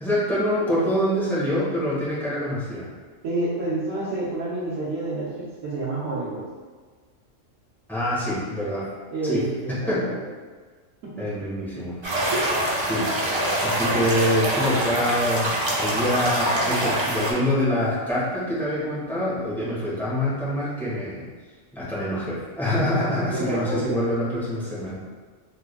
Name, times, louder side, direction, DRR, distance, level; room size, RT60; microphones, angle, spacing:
voice 1, 0.0-2.9 7.9-8.9 9.2-9.4 9.7-10.0 11.2-12.0 12.7-13.1 13.6-15.5 15.8-21.2 21.7-24.9, left 1 dB, ahead, -9 dB, 1.0 m, -25 dB
voice 2, 3.2-6.4 9.1-10.2 11.0-11.3 23.3-24.1, right 2 dB, 80° right, -8 dB, 1.1 m, -29 dB
sound 1, 12.0-17.3, right 1 dB, 35° right, 0.4 m, -24 dB
3.5 x 3.2 x 2.2 m, 1.5 s
omnidirectional pair, 1.3 m